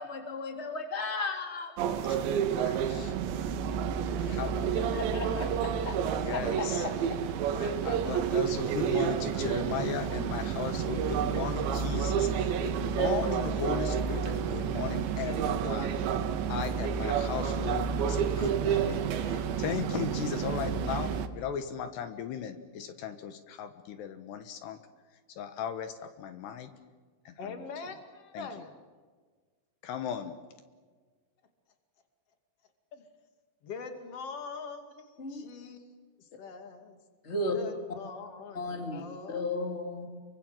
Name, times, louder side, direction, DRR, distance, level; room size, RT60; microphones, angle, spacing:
voice 1, 0.0-1.7 4.7-7.2 35.2-35.5 37.2-37.5 38.5-40.1, left 2 dB, 15° left, 4 dB, 3.1 m, -35 dB
sound 1, 1.8-21.3, right 7 dB, 85° right, 3.7 m, -30 dB
voice 2, 2.0-3.1 4.3-5.0 6.1-6.9 7.5-24.8 25.3-26.7 27.2-27.7 28.3-28.6 29.8-30.3, left 8 dB, 75° left, 9 dB, 3.3 m, -37 dB
voice 3, 27.4-28.8 32.9-33.0 33.6-37.0 37.5-39.5, left 5 dB, 40° left, 6 dB, 3.0 m, -43 dB
28.0 x 24.5 x 7.8 m, 1.5 s
omnidirectional pair, 5.0 m